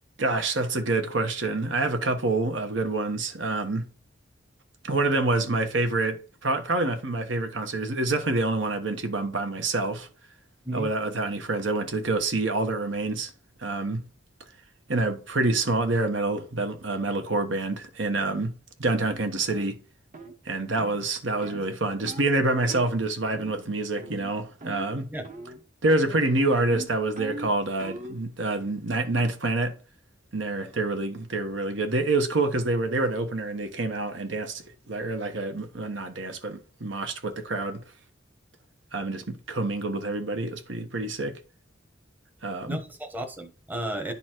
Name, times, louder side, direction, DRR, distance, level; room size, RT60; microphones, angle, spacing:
voice 1, 0.2-3.9 4.8-10.1 10.7-13.3 13.6-14.0 14.9-18.5 18.8-19.8 20.4-25.1 25.8-29.8 30.3-37.8 38.9-41.4 42.4-42.8, right 2 dB, 70° right, 1.2 m, -27 dB
sound 1, 18.2-18.4 18.9-19.1 19.5-19.7 20.1-20.3 20.8-21.0 21.4-21.7 22.1-22.3 22.7-22.9 23.3-23.7 24.0-24.3 24.6-25.0 25.2-25.6 25.9-28.2, right 2 dB, 40° right, 1.1 m, -41 dB
voice 2, 42.7-44.1, right 1 dB, 10° right, 1.0 m, -33 dB
10.0 x 4.1 x 4.4 m
head